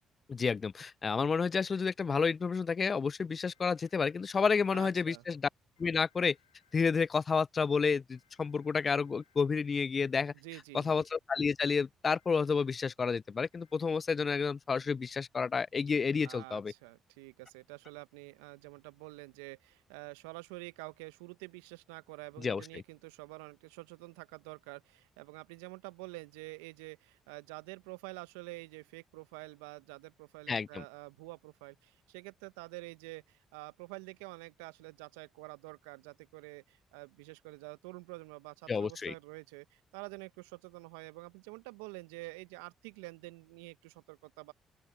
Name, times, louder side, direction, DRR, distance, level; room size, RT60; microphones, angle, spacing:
voice 1, 0.3-5.5 5.8-6.4 6.7-10.3 10.7-16.7 22.4-22.6 30.5-30.8 38.7-39.1, left 5 dB, 40° left, 0.3 m, -30 dB
sound 1, 3.4-4.7 5.8-7.1 8.1-9.5 10.8-11.2 12.2-12.5 13.5-13.9, left 11 dB, 90° left, 6.1 m, -72 dB
voice 2, 4.7-5.2 10.3-10.9 16.2-44.5, right 25 dB, 80° right, 1.1 m, -48 dB
open air
hypercardioid pair, 45°, 0 cm